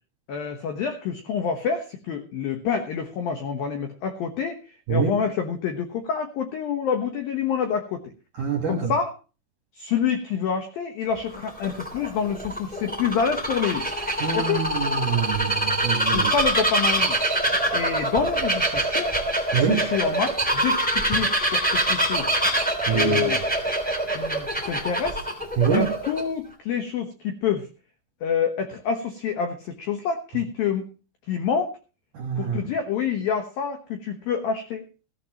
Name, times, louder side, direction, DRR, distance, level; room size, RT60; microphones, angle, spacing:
voice 1, 0.3-8.1 8.7-9.1 9.7-13.9 14.3-14.7 16.1-17.2 17.7-19.1 19.5-22.3 22.9-23.4 24.1-25.2 25.7-27.7 28.2-30.9 31.3-31.7 32.4-34.8, left 7 dB, 80° left, 2.1 m, -27 dB
voice 2, 8.4-8.9 14.2-16.3 19.5-19.9 22.9-23.3 25.6-25.9 32.1-32.6, right 8 dB, 70° right, 2.0 m, -25 dB
Bird vocalization bird call bird song, 11.2-26.2, right 1 dB, 5° left, 0.8 m, -25 dB
15.5 x 14.5 x 3.0 m
omnidirectional pair, 5.9 m